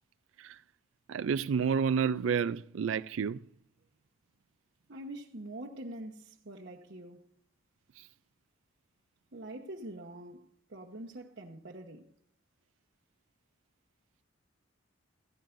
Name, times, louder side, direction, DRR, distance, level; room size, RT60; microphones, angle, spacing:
voice 1, 1.1-3.4 8.0-8.1, right 6 dB, 75° right, 0.4 m, -30 dB
voice 2, 4.9-7.3 9.3-12.1, right 1 dB, 55° right, 1.1 m, -45 dB
16.5 x 15.0 x 2.6 m
head